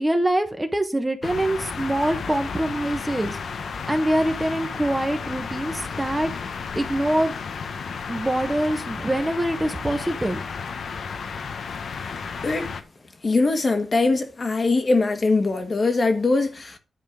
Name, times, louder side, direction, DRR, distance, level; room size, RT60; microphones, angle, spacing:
voice 1, 0.0-6.3 6.7-7.4 8.1-10.4, right 1 dB, 10° right, 1.4 m, -24 dB
sound 1, 1.2-12.8, left 5 dB, 70° left, 1.2 m, -33 dB
voice 2, 12.4-12.7 13.2-16.8, left 3 dB, 40° left, 1.7 m, -22 dB
10.5 x 4.4 x 6.9 m
cardioid pair, 95°, 0 cm